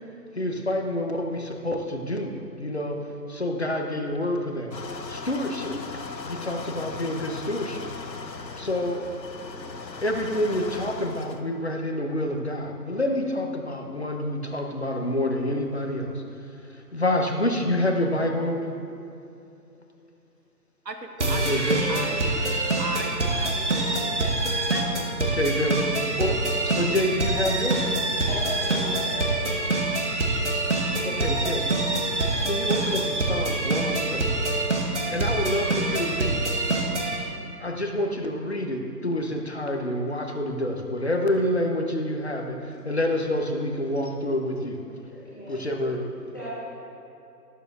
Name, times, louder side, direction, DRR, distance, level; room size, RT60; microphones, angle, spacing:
voice 1, 0.3-3.0 3.3-4.7 5.1-7.9 8.6-9.1 9.6-9.7 10.0-16.2 16.7-18.8 21.2-22.0 25.2-25.9 26.2-26.4 26.6-28.0 31.0-31.7 32.0-32.1 32.4-34.3 35.1-36.5 37.4-44.8 45.5-46.3, left 1 dB, 40° left, 3 dB, 0.9 m, -28 dB
sound 1, 4.7-11.4, left 4 dB, 80° left, 0.9 m, -38 dB
voice 2, 20.8-22.2 22.8-24.9 25.7-25.9 28.3-28.4 28.7-29.0, right 3 dB, 80° right, 5 dB, 1.4 m, -38 dB
sound 2, 21.2-37.2, right 2 dB, 45° right, 1.2 m, -25 dB
voice 3, 28.3-29.6 45.0-45.5 46.3-46.5, left 1 dB, 10° left, -12 dB, 1.5 m, -37 dB
13.0 x 12.0 x 2.5 m, 2.8 s
figure-of-eight pair, 165°, 49 cm